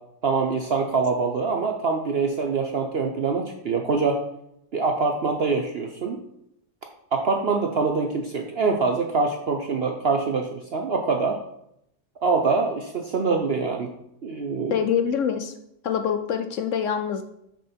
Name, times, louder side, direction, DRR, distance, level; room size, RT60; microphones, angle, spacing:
voice 1, 0.2-4.2 4.7-6.2 7.1-11.4 12.2-13.9 14.2-14.8, right 4 dB, 65° right, 3 dB, 0.6 m, -24 dB
voice 2, 14.7-15.5 15.8-17.2, left 8 dB, 70° left, 7 dB, 0.7 m, -25 dB
6.4 x 6.4 x 4.4 m, 0.77 s
omnidirectional pair, 1.9 m